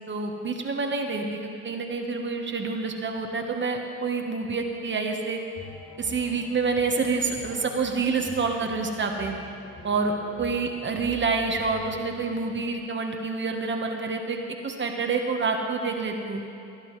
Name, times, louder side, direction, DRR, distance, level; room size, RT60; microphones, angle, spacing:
voice 1, 0.1-5.4 6.0-9.4 9.8-16.4, right 4 dB, 40° right, 3 dB, 1.2 m, -28 dB
sound 1, 5.6-12.8, left 2 dB, 55° left, 3.3 m, -46 dB
18.0 x 11.0 x 3.2 m, 2.8 s
cardioid pair, 90°, 30 cm